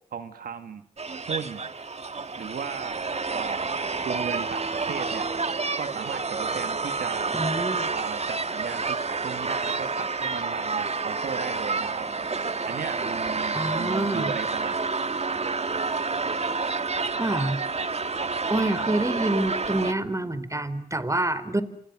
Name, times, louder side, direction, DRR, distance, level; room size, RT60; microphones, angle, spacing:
voice 1, 0.1-0.8 1.3-1.6 2.4-3.0 3.3-5.3 5.8-7.3 7.9-12.1 12.7-14.9, right 7 dB, 85° right, 9 dB, 2.2 m, -36 dB
sound 1, 1.0-19.9, right 4 dB, 45° right, 1.9 m, -29 dB
voice 2, 7.3-7.9 13.5-14.3 17.2-17.6 18.5-21.6, right 1 dB, 20° right, 14 dB, 4.1 m, -27 dB
28.5 x 28.0 x 6.3 m, 0.71 s
cardioid pair, 50°, 15 cm